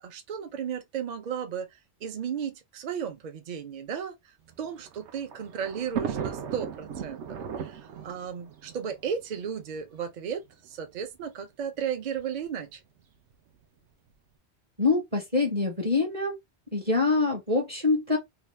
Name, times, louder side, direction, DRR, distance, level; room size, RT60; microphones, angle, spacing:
voice 1, 0.0-12.8, right 7 dB, 55° right, 0.5 m, -35 dB
Thunder, 4.5-9.8 10.7-10.8 11.0-11.1 12.2-12.5, right 8 dB, 85° right, 0.9 m, -36 dB
voice 2, 14.8-16.4 16.7-18.2, left 3 dB, 35° right, 0.9 m, -25 dB
2.8 x 2.3 x 3.1 m
omnidirectional pair, 1.1 m